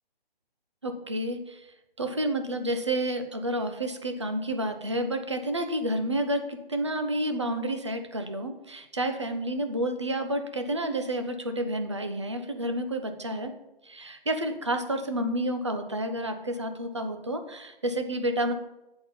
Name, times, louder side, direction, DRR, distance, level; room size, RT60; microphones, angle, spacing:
voice 1, 0.8-1.7 2.0-13.5 13.8-18.5, right 1 dB, 30° right, 7 dB, 0.5 m, -30 dB
7.6 x 4.3 x 5.3 m, 0.93 s
hypercardioid pair, 175°, 29 cm